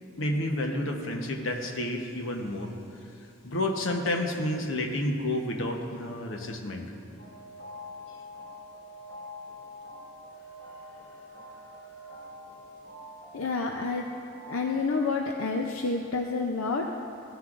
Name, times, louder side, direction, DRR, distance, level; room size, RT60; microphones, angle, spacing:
voice 1, 0.2-2.7 3.4-6.9, left 1 dB, 70° left, 3 dB, 1.0 m, -30 dB
sound 1, 7.2-14.8, left 1 dB, 50° left, 2.5 m, -45 dB
voice 2, 10.6-11.1 12.1-12.2 13.3-14.1 14.5-16.9, left 4 dB, 85° left, 2 dB, 0.5 m, -29 dB
15.5 x 9.7 x 2.5 m, 2.7 s
head